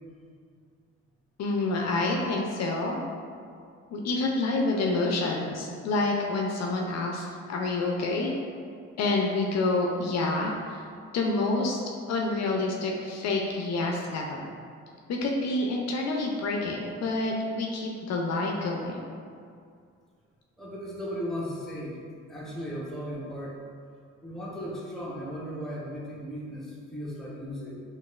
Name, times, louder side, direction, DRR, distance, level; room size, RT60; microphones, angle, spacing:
voice 1, 1.4-3.0 3.9-8.3 9.0-10.8 11.1-11.8 12.1-14.5 15.1-19.0, left 2 dB, 60° left, 0 dB, 0.4 m, -28 dB
voice 2, 20.6-22.0 22.3-23.6 24.2-27.8, equal, ahead, -6 dB, 0.7 m, -36 dB
3.9 x 2.4 x 2.3 m, 2.2 s
cardioid pair, 90°, 30 cm